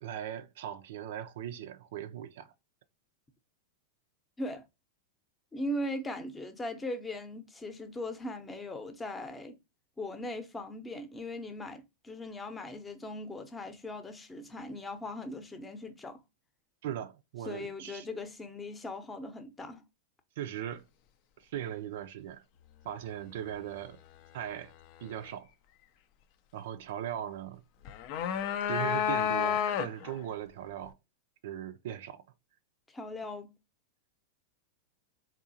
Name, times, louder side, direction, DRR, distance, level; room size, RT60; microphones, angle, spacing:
voice 1, 0.0-2.5 16.8-18.1 20.4-20.9 21.4-22.4 22.8-24.0 24.3-24.7 25.0-25.5 26.5-27.6 28.6-31.0 31.4-32.2, right 10 dB, 65° right, 0.4 m, -39 dB
voice 2, 5.5-9.6 10.0-16.2 17.5-19.8 32.9-33.5, left 1 dB, 15° left, 0.7 m, -39 dB
sound 1, 27.9-30.2, left 9 dB, 50° left, 0.4 m, -30 dB
3.7 x 2.7 x 2.6 m
hypercardioid pair, 105°, 0 cm